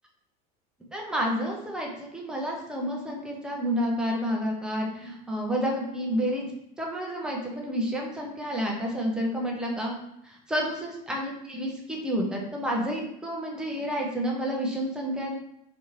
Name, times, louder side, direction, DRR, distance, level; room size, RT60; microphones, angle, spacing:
voice 1, 0.9-6.5 6.8-10.0 10.2-15.4, equal, 5° right, -1 dB, 0.3 m, -30 dB
4.1 x 2.4 x 2.9 m, 0.78 s
supercardioid pair, 165°, 20 cm